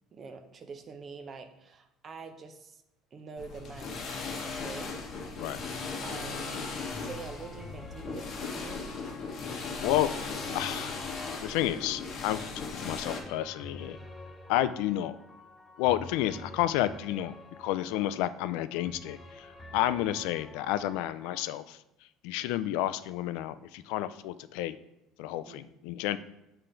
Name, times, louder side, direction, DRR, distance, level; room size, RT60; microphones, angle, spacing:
voice 1, 0.1-2.8 3.1-4.1 4.4-5.0 6.0-6.7 7.0-9.1 25.4-25.7, right 4 dB, 30° right, 7 dB, 0.6 m, -45 dB
sound 1, 3.4-13.2, left 4 dB, 35° left, 0.9 m, -37 dB
sound 2, 5.9-21.4, left 2 dB, 10° left, 0.6 m, -49 dB
voice 2, 10.5-11.0 11.4-14.0 14.5-15.1 15.8-17.3 17.6-19.5 19.7-21.8 22.2-24.8 25.2-26.2, left 13 dB, 80° left, 14 dB, 0.3 m, -30 dB
6.8 x 3.8 x 4.4 m, 0.91 s
cardioid pair, 155°, 0 cm